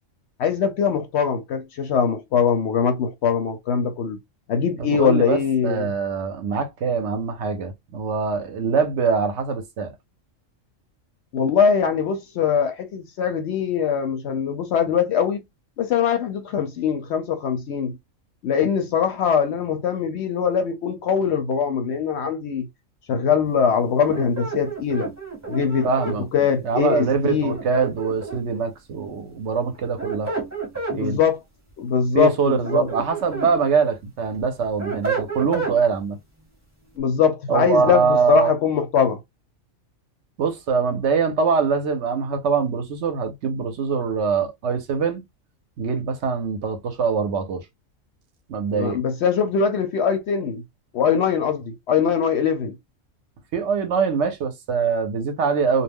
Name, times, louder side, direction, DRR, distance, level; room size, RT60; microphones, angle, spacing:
voice 1, 0.4-4.2 4.5-5.9 11.3-15.4 15.8-18.0 18.4-22.7 23.1-25.1 25.5-27.6 30.9-31.4 31.8-32.9 37.0-39.2 48.8-50.6 50.9-52.7, left 7 dB, 65° left, 0.7 m, -22 dB
voice 2, 4.8-5.4 5.6-9.9 25.8-26.2 26.6-30.3 30.9-31.2 32.1-36.2 37.5-38.5 40.4-45.2 45.8-47.6 48.5-49.0 53.5-55.8, right 5 dB, 65° right, 0.8 m, -23 dB
sound 1, 24.1-26.2 27.5-28.6 29.7-31.0 32.4-33.5 34.0-35.8, right 5 dB, 15° right, 0.8 m, -30 dB
2.3 x 2.1 x 3.3 m
omnidirectional pair, 1.4 m